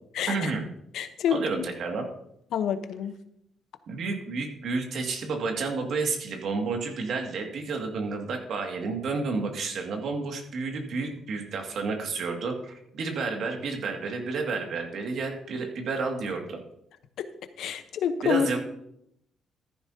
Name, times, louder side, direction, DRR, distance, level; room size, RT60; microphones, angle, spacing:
voice 1, 0.3-0.6 1.3-2.1 3.9-16.6 18.2-18.6, right 4 dB, 65° right, 3 dB, 2.1 m, -30 dB
voice 2, 0.9-1.4 2.5-3.1 17.2-17.3 17.6-18.5, left 8 dB, 75° left, 10 dB, 0.9 m, -27 dB
14.0 x 11.0 x 2.8 m, 0.75 s
cardioid pair, 90°, 0 cm